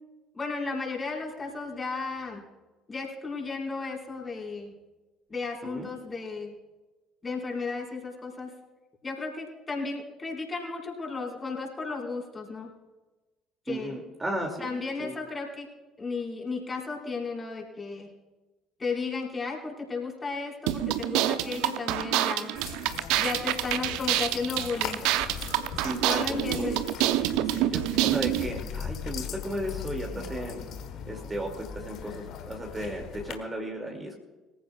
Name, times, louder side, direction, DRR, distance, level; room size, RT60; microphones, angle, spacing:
voice 1, 0.3-2.4 2.9-4.7 5.3-6.5 7.2-8.5 9.0-12.7 13.7-14.0 14.6-15.7 16.0-18.1 18.8-22.5 23.2-25.0 26.0-26.8, left 4 dB, 25° left, -2 dB, 5.1 m, -34 dB
voice 2, 13.7-14.7 15.0-15.2 25.8-26.7 27.4-30.6 31.1-34.1, equal, 15° right, 1 dB, 2.6 m, -35 dB
sound 1, 20.7-28.5, right 14 dB, 60° right, 0.7 m, -27 dB
sound 2, 22.6-33.3, left 7 dB, 55° left, 1.4 m, -39 dB
23.5 x 15.0 x 2.4 m, 1.2 s
figure-of-eight pair, 55°, 0 cm